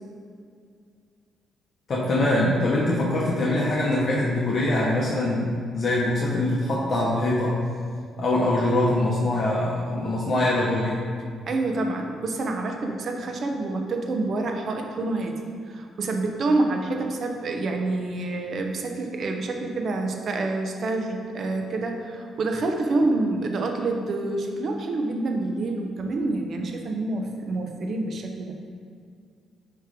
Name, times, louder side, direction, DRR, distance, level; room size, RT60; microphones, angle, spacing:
voice 1, 1.9-7.5 8.2-11.0, left 1 dB, 50° left, -5 dB, 1.1 m, -23 dB
voice 2, 11.5-15.3 15.7-28.5, right 2 dB, 55° right, 3 dB, 0.9 m, -27 dB
9.3 x 3.2 x 5.1 m, 2.2 s
cardioid pair, 90°, 0 cm